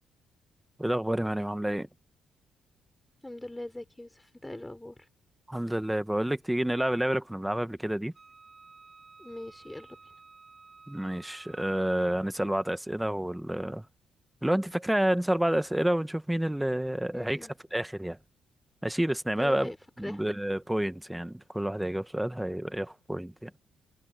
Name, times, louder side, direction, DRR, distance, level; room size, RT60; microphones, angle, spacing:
voice 1, 0.8-1.9 5.5-8.1 10.9-13.8 14.4-17.4 17.7-18.2 18.8-19.7 20.0-23.5, right 1 dB, 5° right, 1.3 m, -29 dB
voice 2, 3.2-5.1 9.2-10.1 17.1-17.5 19.4-20.2, left 1 dB, 10° left, 3.3 m, -42 dB
Wind instrument woodwind instrument, 8.1-12.4, right 4 dB, 30° right, 4.7 m, -53 dB
cardioid pair, 90°, 0 cm